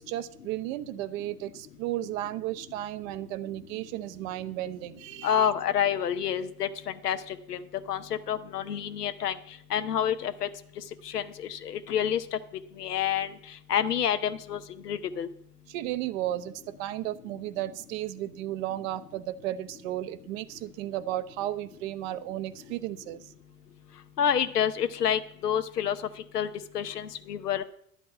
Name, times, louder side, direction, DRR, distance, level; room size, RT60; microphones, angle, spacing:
voice 1, 0.0-5.5 15.7-23.2, right 14 dB, 60° right, 13 dB, 0.9 m, -34 dB
voice 2, 5.2-6.7 7.0-7.6 7.9-8.0 8.3-9.4 9.7-10.5 11.0-12.4 12.8-13.3 13.7-15.3 24.2-26.0 26.3-26.5 26.7-27.6, left 9 dB, 90° left, 10 dB, 0.9 m, -28 dB
11.0 x 5.3 x 8.5 m, 0.67 s
hypercardioid pair, 80°, 46 cm